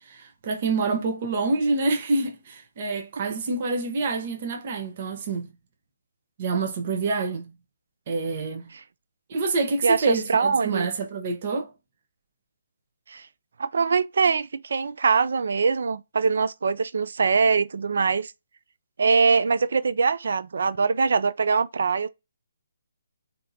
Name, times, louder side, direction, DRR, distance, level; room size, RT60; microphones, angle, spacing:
voice 1, 0.0-5.5 6.4-7.5 8.1-8.7 9.3-11.7, right 3 dB, 40° right, 0.7 m, -27 dB
voice 2, 9.8-10.9 13.1-13.2 13.6-18.3 19.0-22.1, right 5 dB, 70° right, 0.4 m, -23 dB
3.4 x 2.8 x 2.7 m
hypercardioid pair, 155°, 0 cm